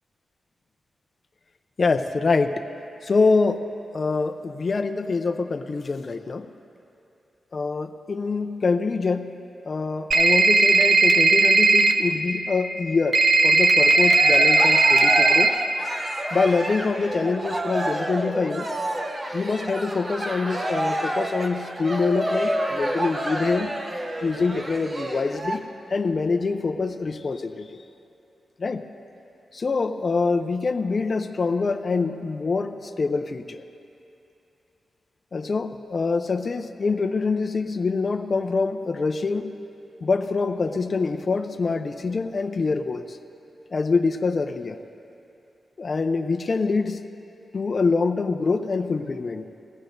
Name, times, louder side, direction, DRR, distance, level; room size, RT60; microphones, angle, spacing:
voice 1, 1.8-2.7 3.0-3.7 3.9-6.5 7.5-9.4 9.7-15.6 16.3-18.7 19.3-23.7 24.2-25.6 25.9-27.8 28.6-28.9 29.5-33.6 35.3-39.5 40.0-43.2 43.7-44.8 45.8-47.1 47.5-49.6, left 4 dB, 50° left, 6 dB, 0.6 m, -25 dB
sound 1, 10.1-11.9 13.1-15.5, right 3 dB, 60° right, 0.8 m, -17 dB
Cheering, 13.8-25.6, right 1 dB, 40° right, 1.1 m, -29 dB
20.0 x 15.0 x 2.6 m, 2.8 s
cardioid pair, 70°, 0 cm